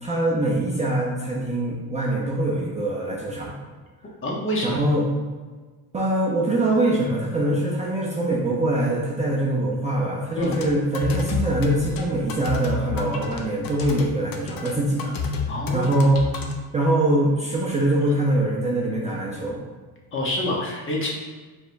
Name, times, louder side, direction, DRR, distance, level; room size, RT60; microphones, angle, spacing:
voice 1, 0.0-3.5 4.6-5.0 5.9-15.1 15.4-16.2 16.7-19.6, right 1 dB, 20° right, -4 dB, 0.5 m, -23 dB
voice 2, 4.2-4.8 10.3-10.7 15.4-15.9 20.1-21.1, left 1 dB, 30° left, -2 dB, 0.9 m, -26 dB
sound 1, 10.4-16.5, left 5 dB, 60° left, 0.6 m, -29 dB
4.8 x 3.4 x 2.6 m, 1.4 s
cardioid pair, 140°, 39 cm